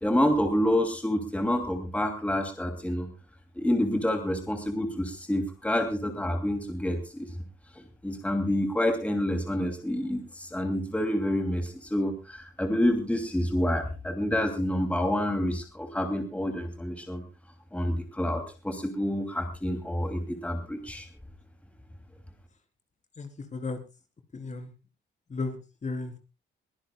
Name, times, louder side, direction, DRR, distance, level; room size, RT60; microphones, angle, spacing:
voice 1, 0.0-3.1 3.6-7.3 7.8-17.2 17.7-21.1, left 1 dB, 5° left, 6 dB, 2.9 m, -28 dB
voice 2, 23.2-23.8 24.3-24.7 25.3-26.2, left 3 dB, 35° left, 7 dB, 3.9 m, -35 dB
23.0 x 16.0 x 2.3 m, 0.31 s
cardioid pair, 90°, 20 cm